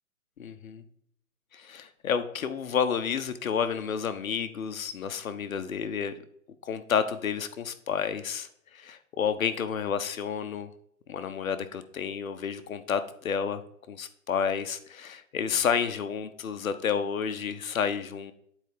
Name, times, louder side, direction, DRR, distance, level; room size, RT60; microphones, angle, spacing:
voice 1, 0.4-0.8 1.5-6.1 6.7-10.7 11.1-13.6 13.9-18.3, left 7 dB, 75° left, 10 dB, 1.0 m, -30 dB
9.1 x 4.6 x 3.6 m, 0.70 s
hypercardioid pair, 165°, 41 cm